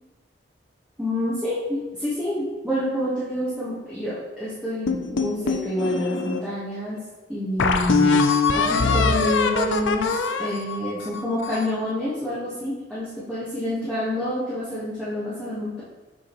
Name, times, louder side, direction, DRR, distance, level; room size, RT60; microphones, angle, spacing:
voice 1, 1.0-7.0 7.3-15.8, left 1 dB, 5° right, -11 dB, 1.4 m, -28 dB
sound 1, 4.9-6.4 7.0-7.1 7.6-11.8, left 4 dB, 90° left, 0.6 m, -23 dB
7.2 x 6.2 x 3.1 m, 1.2 s
head